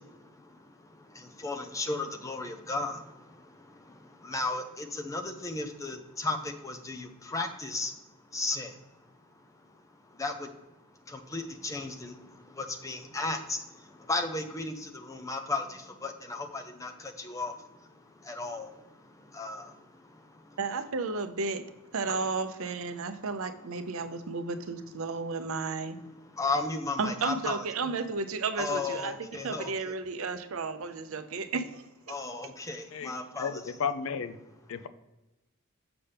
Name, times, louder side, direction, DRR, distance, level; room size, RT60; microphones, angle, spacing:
voice 1, 0.0-20.6 22.1-22.2 24.0-24.1 26.3-27.6 28.6-29.7 32.1-33.6, left 3 dB, 15° left, 5 dB, 0.6 m, -36 dB
voice 2, 20.6-21.7 21.9-26.0 27.0-29.2 29.4-32.1, right 4 dB, 70° right, 9 dB, 0.6 m, -33 dB
voice 3, 32.9-34.4 34.7-34.9, left 6 dB, 70° left, 11 dB, 0.4 m, -34 dB
6.9 x 5.7 x 3.4 m, 1.0 s
head